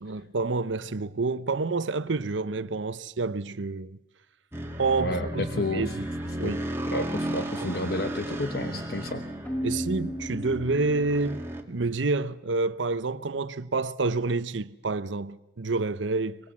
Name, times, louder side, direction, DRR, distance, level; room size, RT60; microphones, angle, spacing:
voice 1, 0.0-4.0 4.8-6.0 6.4-6.6 8.6-8.8 9.6-16.4, right 3 dB, 85° right, 0.8 m, -28 dB
sound 1, 4.5-11.6, right 1 dB, 15° right, 2.0 m, -34 dB
voice 2, 5.0-5.9 6.4-6.5 6.8-9.2, left 2 dB, 55° left, 1.2 m, -31 dB
Keyboard (musical), 9.4-11.3, equal, 10° left, 1.1 m, -35 dB
24.5 x 21.5 x 7.3 m
head